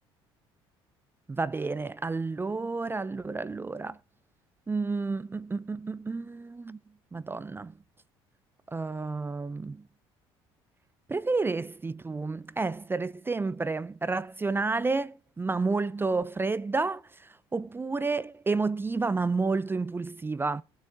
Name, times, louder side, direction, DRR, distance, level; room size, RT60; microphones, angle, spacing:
voice 1, 1.3-4.0 4.7-6.8 7.1-7.7 8.7-9.8 11.1-17.0 17.5-20.6, right 3 dB, 15° right, 0.4 m, -30 dB
19.0 x 7.2 x 2.7 m
hypercardioid pair, 65°, 13 cm